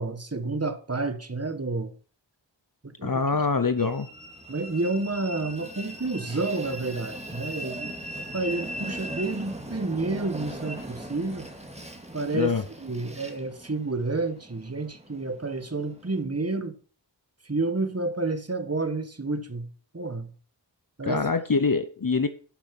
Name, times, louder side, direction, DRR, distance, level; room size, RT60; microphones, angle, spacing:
voice 1, 0.0-1.9 2.8-3.2 4.5-7.9 8.2-11.5 12.1-12.5 12.8-16.7 17.4-19.7 19.9-20.3 21.0-21.2, right 3 dB, 35° right, 1.5 m, -30 dB
voice 2, 3.0-4.1 12.3-12.6 21.0-22.3, left 4 dB, 50° left, 0.9 m, -24 dB
Train, 3.8-16.2, right 1 dB, 15° right, 2.3 m, -39 dB
11.0 x 7.1 x 5.9 m
wide cardioid pair, 45°, 44 cm